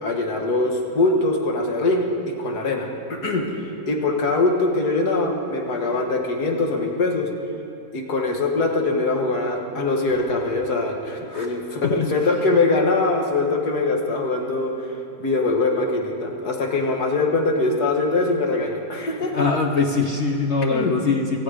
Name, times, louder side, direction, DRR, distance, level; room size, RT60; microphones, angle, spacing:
voice 1, 0.0-2.1 2.4-3.5 3.9-7.3 7.9-14.9 15.2-19.3 20.7-20.9, left 3 dB, 85° left, 1 dB, 2.2 m, -22 dB
voice 2, 19.3-21.4, left 4 dB, 55° left, 3 dB, 1.0 m, -22 dB
17.0 x 15.0 x 5.0 m, 2.7 s
omnidirectional pair, 1.7 m